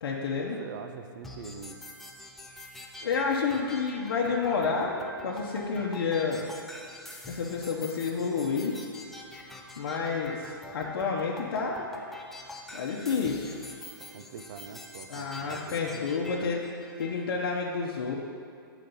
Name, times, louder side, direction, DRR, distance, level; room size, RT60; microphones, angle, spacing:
voice 1, 0.0-0.6 3.0-5.0 5.2-6.5 7.3-8.8 9.8-11.8 12.7-13.5 15.1-16.7 17.0-18.1, left 5 dB, 70° left, -2 dB, 0.9 m, -29 dB
voice 2, 0.6-1.8 14.0-16.1, right 6 dB, 50° right, 8 dB, 0.6 m, -44 dB
sound 1, 1.2-17.2, left 2 dB, ahead, 0.5 m, -45 dB
7.5 x 5.0 x 5.5 m, 2.3 s
hypercardioid pair, 145°, 13 cm